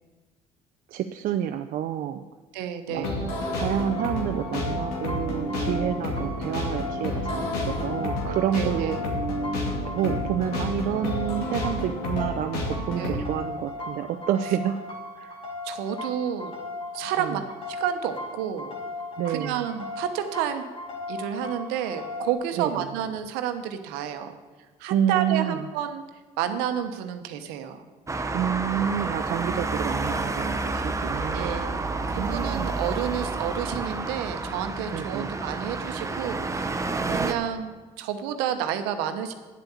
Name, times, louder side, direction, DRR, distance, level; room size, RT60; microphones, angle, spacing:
voice 1, 0.9-2.2 2.9-3.1 3.5-9.0 9.9-14.8 15.2-15.3 17.2-17.4 19.2-19.6 22.6-22.9 24.9-25.6 28.3-31.6 31.8-32.7 34.9-35.3 37.1-37.3, right 10 dB, 60° right, 7 dB, 0.5 m, -29 dB
voice 2, 2.5-3.2 8.5-9.0 13.0-13.2 15.6-16.5 16.9-17.4 17.7-18.7 19.3-20.6 21.1-24.4 24.8-26.0 26.4-27.8 31.3-31.8 32.1-36.8 37.1-39.3, right 9 dB, 75° right, 8 dB, 1.0 m, -30 dB
sound 1, 2.9-13.2, left 1 dB, 75° left, 2.3 m, -30 dB
sound 2, 3.6-22.3, left 2 dB, 35° left, 2.4 m, -37 dB
Traffic noise roadway noise, 28.1-37.3, right 3 dB, 20° right, 1.0 m, -29 dB
9.6 x 8.0 x 7.1 m, 1.3 s
hypercardioid pair, 65°, 16 cm